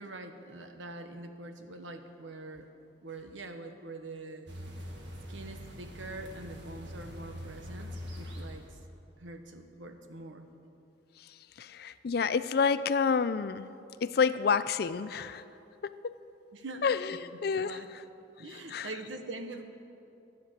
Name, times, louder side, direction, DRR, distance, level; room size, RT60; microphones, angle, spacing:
voice 1, 0.0-2.7 3.0-4.5 5.3-8.6 9.2-10.5 16.5-17.9 18.4-19.6, right 2 dB, 85° right, 7 dB, 1.1 m, -44 dB
sound 1, 4.5-8.8, equal, 70° right, 1.7 m, -43 dB
voice 2, 11.6-13.7 14.0-15.4 15.8-16.1 16.8-17.2 17.4-17.8 18.7-18.9, left 5 dB, 55° left, 14 dB, 0.4 m, -28 dB
12.5 x 9.4 x 7.3 m, 2.8 s
head